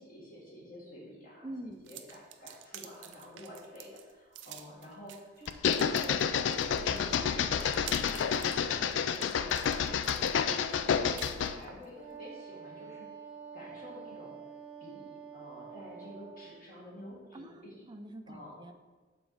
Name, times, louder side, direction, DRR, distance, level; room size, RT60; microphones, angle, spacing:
voice 1, 0.0-5.5 5.9-6.2 6.6-13.1 13.5-14.4 14.8-17.8 18.3-18.6, equal, 50° left, -6 dB, 1.9 m, -49 dB
voice 2, 1.4-1.8 17.3-18.7, right 1 dB, 25° right, 7 dB, 0.4 m, -45 dB
sound 1, 1.8-11.9, right 10 dB, 85° right, 0.5 m, -49 dB
sound 2, 5.5-11.6, left 7 dB, 80° left, 0.3 m, -29 dB
Wind instrument woodwind instrument, 11.9-16.6, right 7 dB, 5° right, 1.0 m, -48 dB
7.0 x 4.0 x 4.9 m, 1.3 s
head